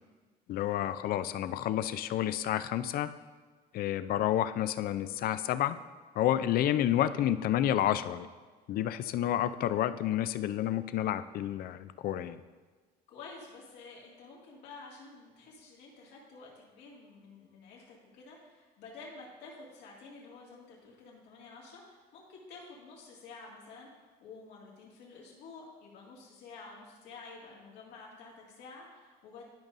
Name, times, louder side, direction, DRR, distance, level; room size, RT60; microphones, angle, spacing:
voice 1, 0.5-3.1 3.7-5.8 6.2-8.3 8.7-12.4, left 12 dB, 60° left, 13 dB, 0.4 m, -30 dB
voice 2, 13.1-29.4, left 4 dB, 90° left, -3 dB, 2.0 m, -50 dB
12.0 x 5.3 x 2.6 m, 1.4 s
cardioid pair, 110°, 17 cm